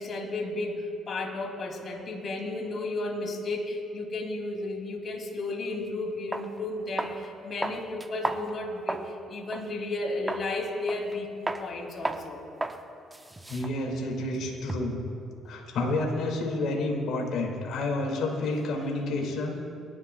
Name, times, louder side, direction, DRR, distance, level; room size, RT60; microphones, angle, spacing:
voice 1, 0.0-12.4 18.4-19.1, left 2 dB, 50° left, 1 dB, 2.7 m, -33 dB
sound 1, 5.7-5.8 6.3-6.5 7.0-7.3 7.6-9.1 9.5-9.7 10.3-10.5 10.9-11.2 11.5-11.7 12.0-12.3 12.6-12.8 13.1-15.0, right 1 dB, 15° right, 0.9 m, -34 dB
voice 2, 13.5-15.0 15.5-19.6, left 2 dB, 70° left, 0 dB, 2.2 m, -29 dB
24.5 x 11.0 x 2.3 m, 2.5 s
supercardioid pair, 70°, 0 cm